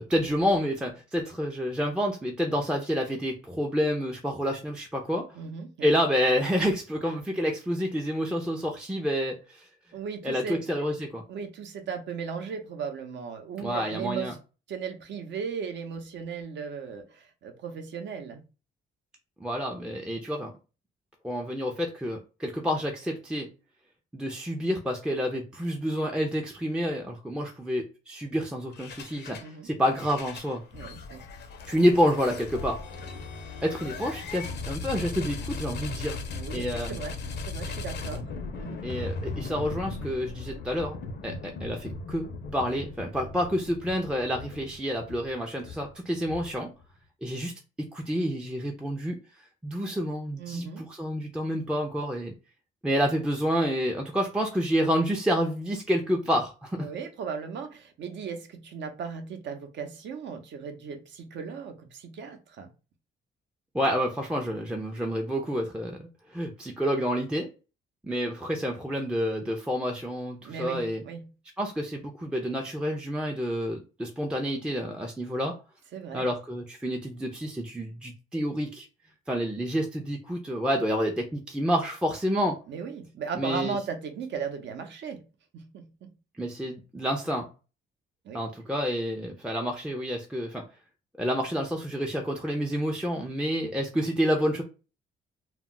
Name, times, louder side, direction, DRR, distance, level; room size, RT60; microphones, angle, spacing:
voice 1, 0.0-5.3 5.8-9.7 10.2-11.2 13.6-14.3 19.4-20.5 21.2-23.5 24.1-30.6 31.7-32.8 33.6-36.2 36.5-37.0 38.8-46.7 47.2-47.5 47.9-49.2 49.6-52.3 52.8-56.9 63.7-67.5 68.0-71.0 71.6-75.5 76.1-78.9 79.3-82.6 83.3-83.7 86.4-87.5 88.3-90.6 91.2-94.6, equal, 5° right, 0.4 m, -29 dB
voice 2, 5.3-5.9 9.9-10.9 11.3-14.4 14.7-18.4 29.4-29.7 30.7-31.2 36.4-37.2 37.5-38.3 38.6-38.8 50.4-50.9 56.8-62.7 70.4-71.3 75.9-76.3 82.7-85.2 85.5-86.1 88.2-88.4, right 6 dB, 65° right, 0.7 m, -37 dB
sound 1, 28.7-29.5 29.8-46.8, left 3 dB, 60° left, 0.6 m, -38 dB
2.2 x 2.0 x 3.7 m
cardioid pair, 90°, 20 cm